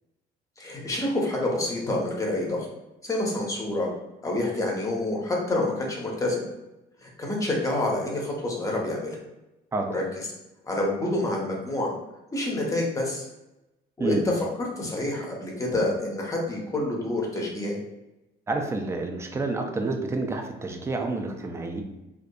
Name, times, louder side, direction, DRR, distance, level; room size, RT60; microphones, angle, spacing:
voice 1, 0.6-2.7 3.0-3.9 4.2-6.4 7.0-9.2 9.9-10.0 10.6-11.9 12.3-13.3 14.0-14.2 14.6-17.8, left 1 dB, 20° left, -2 dB, 0.7 m, -28 dB
voice 2, 18.5-21.8, right 2 dB, 15° right, 3 dB, 0.3 m, -29 dB
2.6 x 2.4 x 2.2 m, 0.95 s
cardioid pair, 110°, 17 cm